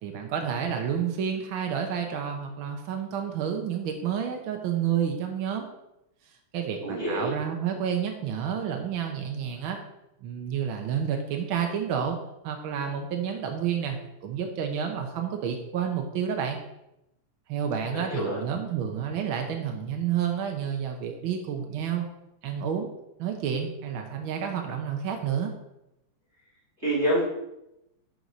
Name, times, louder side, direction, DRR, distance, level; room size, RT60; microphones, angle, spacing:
voice 1, 0.0-5.7 6.5-9.8 10.2-12.2 12.4-16.6 17.5-22.1 22.4-22.9 23.2-25.5, right 8 dB, 80° right, 3 dB, 1.1 m, -30 dB
voice 2, 6.8-7.3 17.9-18.4 26.8-27.3, right 1 dB, 25° right, -7 dB, 2.5 m, -26 dB
10.5 x 4.8 x 4.1 m, 0.87 s
omnidirectional pair, 3.4 m